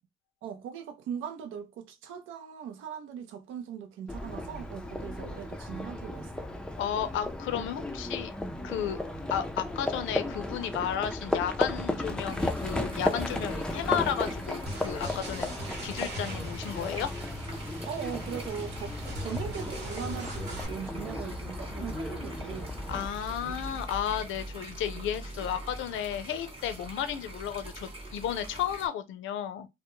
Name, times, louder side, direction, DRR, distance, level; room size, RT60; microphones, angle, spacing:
voice 1, 0.4-6.5 17.8-22.7, right 8 dB, 85° right, 0.5 m, -39 dB
Livestock farm animals working animals, 4.1-23.1, left 1 dB, 5° left, 0.4 m, -35 dB
voice 2, 6.8-8.3 8.6-9.0 9.3-15.5 15.8-17.1 22.9-29.7, left 9 dB, 80° left, 0.5 m, -33 dB
sound 1, 12.3-28.9, equal, 30° right, 0.8 m, -43 dB
sound 2, 14.7-20.7, right 1 dB, 55° right, 1.0 m, -39 dB
2.2 x 2.1 x 2.9 m
cardioid pair, 90°, 20 cm